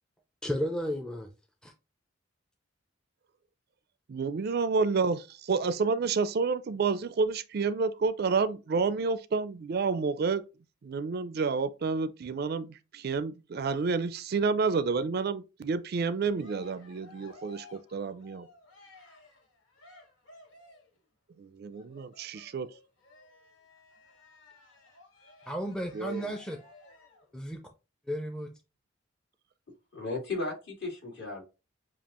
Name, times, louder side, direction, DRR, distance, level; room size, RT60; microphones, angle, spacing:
voice 1, 0.4-1.3 1.6-1.7 25.5-26.6 27.3-27.6 28.1-28.5, equal, 5° left, 0.5 m, -33 dB
voice 2, 4.1-10.4 10.8-18.5 21.4-22.7 25.9-26.3, right 4 dB, 55° right, 0.4 m, -29 dB
Cheering, 16.0-21.0 21.7-27.3, left 2 dB, 85° left, 1.8 m, -56 dB
voice 3, 29.9-31.4, left 3 dB, 60° left, 2.3 m, -35 dB
7.1 x 2.4 x 2.9 m
head